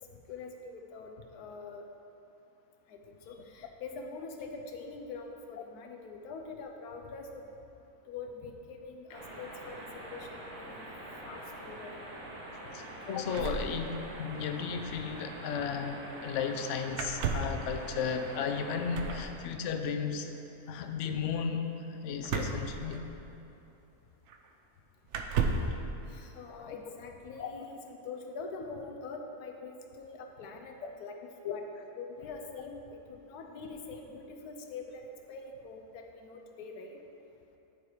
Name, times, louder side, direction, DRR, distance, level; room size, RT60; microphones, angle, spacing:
voice 1, 0.3-1.9 2.9-7.5 8.1-10.9 11.2-12.0 13.5-13.8 26.1-31.6 32.0-37.0, left 4 dB, 85° left, 3 dB, 1.3 m, -44 dB
sound 1, 9.1-19.2, right 1 dB, 90° right, 1.7 m, -45 dB
voice 2, 12.7-20.4 20.7-21.6 21.9-23.0 26.5-26.7 27.4-27.5 30.8-30.9 31.4-31.6, left 6 dB, 65° left, 6 dB, 0.8 m, -34 dB
sound 2, 13.3-14.4 14.6-14.7 14.9-15.1 16.9-17.7 18.9-19.3 22.2-23.4 24.3-24.4 25.1-25.8, right 4 dB, 65° right, 0.8 m, -33 dB
9.7 x 4.6 x 4.8 m, 2.8 s
omnidirectional pair, 1.6 m